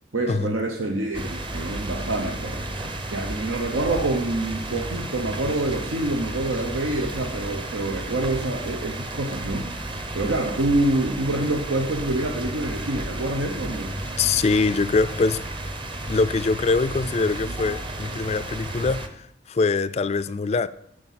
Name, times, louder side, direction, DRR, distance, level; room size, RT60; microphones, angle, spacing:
voice 1, 0.1-2.6 3.1-14.0, right 2 dB, 90° right, 1.0 m, -26 dB
sound 1, 1.1-19.1, right 1 dB, 25° right, 0.7 m, -33 dB
voice 2, 14.2-15.4 16.1-20.7, left 4 dB, 35° left, 0.3 m, -23 dB
9.7 x 5.1 x 7.4 m
head